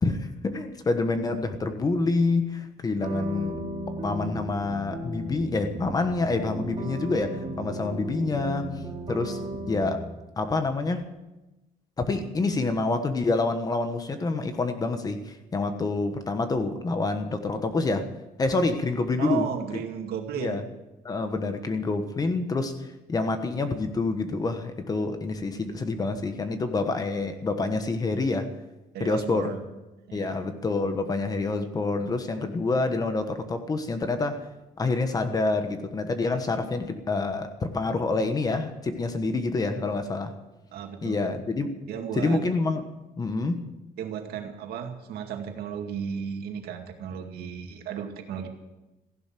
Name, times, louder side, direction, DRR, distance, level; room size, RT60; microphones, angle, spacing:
voice 1, 0.0-3.6 4.0-8.7 9.1-9.4 9.7-10.1 10.4-11.1 12.0-18.1 18.4-19.5 19.7-19.8 20.4-20.6 21.0-28.5 29.0-29.6 30.1-34.4 34.8-40.3 41.0-41.7 42.1-42.8 43.2-43.6, left 3 dB, 25° left, 1.2 m, -27 dB
sound 1, 3.0-10.0, right 1 dB, 35° right, 3.0 m, -35 dB
voice 2, 19.2-20.6 28.9-29.6 30.1-30.4 40.7-41.2 41.9-42.4 44.0-48.5, right 8 dB, 80° right, 2.2 m, -34 dB
15.5 x 11.5 x 7.6 m
cardioid pair, 160°, 16 cm